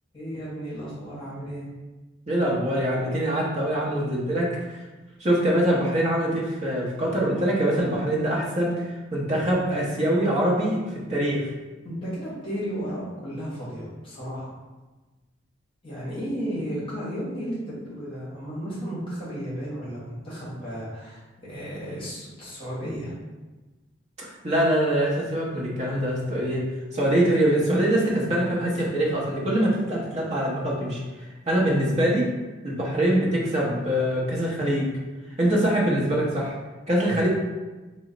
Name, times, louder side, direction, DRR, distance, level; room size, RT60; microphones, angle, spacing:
voice 1, 0.1-1.7 11.8-14.6 15.8-23.1, equal, 30° left, -9 dB, 1.0 m, -34 dB
voice 2, 2.3-4.8 5.2-11.5 24.2-26.6 26.9-31.0 31.5-32.3 32.6-34.9 35.4-36.5 36.9-37.3, right 1 dB, 35° right, -4 dB, 0.8 m, -24 dB
3.0 x 2.1 x 3.8 m, 1.2 s
head